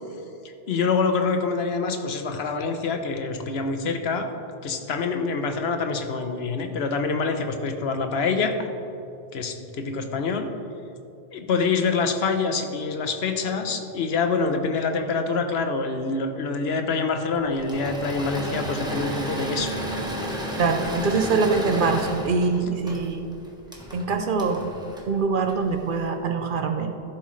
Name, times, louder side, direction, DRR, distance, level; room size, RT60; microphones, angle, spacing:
voice 1, 0.7-4.3 4.6-8.5 9.3-10.5 11.3-20.2, left 4 dB, 90° left, 6 dB, 1.1 m, -26 dB
Engine / Mechanisms, 17.5-25.9, equal, 5° right, 1.1 m, -32 dB
voice 2, 20.6-23.3 23.9-24.7 25.1-26.9, right 4 dB, 60° right, 6 dB, 0.8 m, -24 dB
14.0 x 7.7 x 3.2 m, 2.8 s
omnidirectional pair, 1.0 m